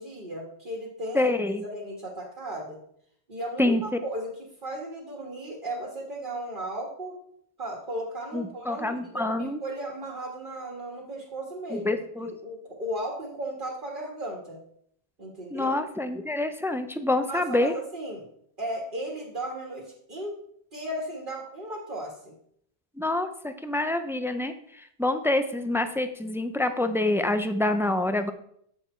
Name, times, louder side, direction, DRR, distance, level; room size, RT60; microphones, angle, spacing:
voice 1, 0.0-2.8 3.3-4.4 4.6-7.2 7.6-14.6 15.2-15.8 17.3-18.2 18.6-20.4 20.7-22.3, right 1 dB, 50° right, -3 dB, 2.0 m, -35 dB
voice 2, 1.1-1.6 3.6-4.0 8.3-9.6 11.7-12.3 15.5-17.7 23.0-28.3, left 2 dB, 5° right, 9 dB, 0.3 m, -27 dB
9.1 x 6.3 x 4.5 m, 0.67 s
omnidirectional pair, 1.1 m